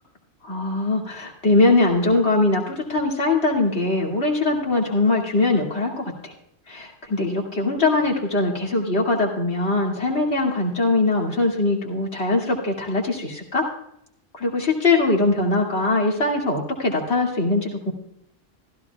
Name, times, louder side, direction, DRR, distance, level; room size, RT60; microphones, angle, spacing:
voice 1, 0.4-6.3 6.7-13.7 14.3-17.9, left 2 dB, 75° left, -1 dB, 2.7 m, -21 dB
15.5 x 14.0 x 2.3 m, 0.73 s
omnidirectional pair, 1.1 m